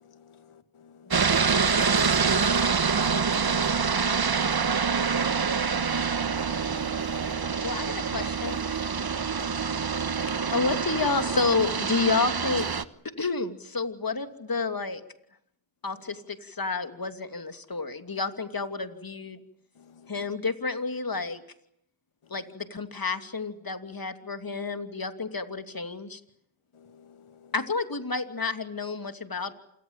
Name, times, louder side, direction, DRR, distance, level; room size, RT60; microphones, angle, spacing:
voice 1, 0.0-1.3 19.8-20.1 26.7-27.5, left 6 dB, 85° left, 10 dB, 2.3 m, -55 dB
sound 1, 1.1-12.8, right 5 dB, 50° right, 1.4 m, -26 dB
voice 2, 2.2-2.8 9.3-9.7, left 1 dB, 25° left, 2 dB, 7.4 m, -49 dB
voice 3, 7.6-8.6 10.5-12.7 13.0-15.0 15.8-19.4 20.1-21.4 22.3-26.2 27.5-29.5, left 4 dB, 45° left, 9 dB, 2.9 m, -30 dB
27.5 x 20.0 x 9.0 m, 0.72 s
cardioid pair, 40°, 49 cm